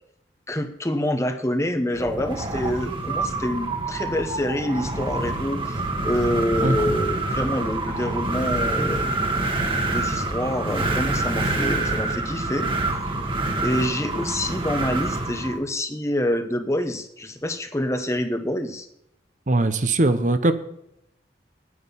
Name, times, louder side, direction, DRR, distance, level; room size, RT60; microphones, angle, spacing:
voice 1, 0.5-9.1 9.9-12.7 13.6-18.9, left 1 dB, 15° left, 0.9 m, -26 dB
Wind, 1.9-15.6, right 2 dB, 30° right, 1.5 m, -26 dB
voice 2, 19.5-20.5, right 2 dB, 45° right, 0.8 m, -20 dB
10.0 x 9.5 x 7.1 m
head